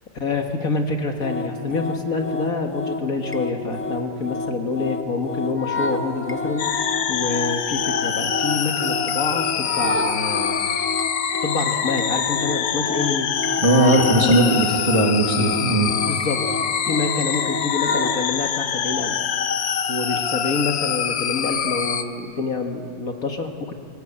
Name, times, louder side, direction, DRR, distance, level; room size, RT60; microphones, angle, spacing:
voice 1, 0.2-10.6 11.4-13.3 14.2-14.4 16.0-16.4 16.9-19.2 19.9-23.7, left 4 dB, 55° left, 4 dB, 1.9 m, -27 dB
sound 1, 1.2-18.3, left 2 dB, 15° left, 0.5 m, -29 dB
sound 2, 6.6-22.0, left 8 dB, 90° left, 1.7 m, -25 dB
voice 2, 13.6-15.9, right 1 dB, 20° right, 0 dB, 2.0 m, -18 dB
23.5 x 17.5 x 8.7 m, 2.4 s
omnidirectional pair, 1.9 m